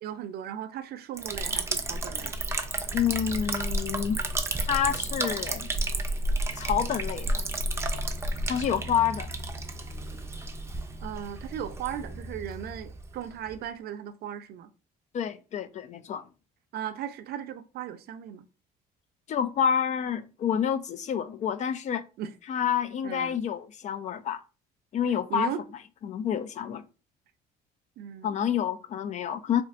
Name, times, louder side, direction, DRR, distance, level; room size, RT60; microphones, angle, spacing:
voice 1, 0.0-2.5 11.0-14.7 16.7-18.5 22.2-22.3 23.0-23.4 25.3-25.6 28.0-28.5, right 10 dB, 70° right, 0.5 m, -37 dB
Liquid, 1.2-13.6, right 2 dB, 15° right, 0.5 m, -32 dB
voice 2, 2.9-4.2 4.6-5.7 6.6-7.4 8.5-9.3 15.1-16.3 19.3-22.1 22.5-24.4 24.9-25.5 26.0-26.9 28.2-29.6, left 8 dB, 45° left, 0.4 m, -28 dB
4.3 x 2.4 x 2.4 m
cardioid pair, 110°, 17 cm